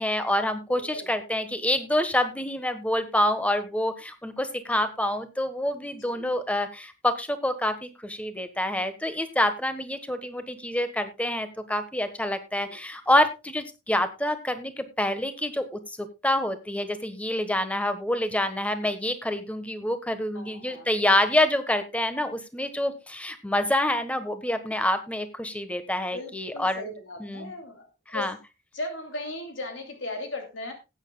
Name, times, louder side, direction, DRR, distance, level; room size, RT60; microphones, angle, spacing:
voice 1, 0.0-26.9 27.2-27.5 28.1-28.3, left 1 dB, 5° left, 9 dB, 1.3 m, -27 dB
voice 2, 0.7-1.1 6.0-6.3 12.6-12.8 20.3-20.9 26.1-28.3 28.7-30.7, left 2 dB, 80° left, 3 dB, 2.8 m, -37 dB
19.0 x 9.1 x 2.3 m, 0.27 s
head